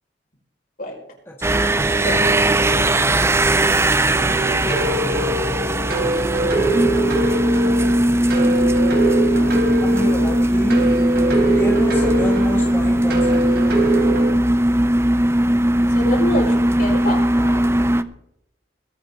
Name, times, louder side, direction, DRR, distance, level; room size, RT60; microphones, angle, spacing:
voice 1, 1.3-2.3 9.8-11.0 11.4-13.6 17.3-17.7, equal, 15° left, 1.6 m, -31 dB
sound 1, 1.4-18.0, right 1 dB, 15° right, 0.5 m, -18 dB
sound 2, 4.7-14.3, right 2 dB, 60° right, 3.6 m, -23 dB
voice 2, 12.2-12.5 15.9-17.2, left 1 dB, 55° left, 5.6 m, -27 dB
22.0 x 9.3 x 4.0 m
head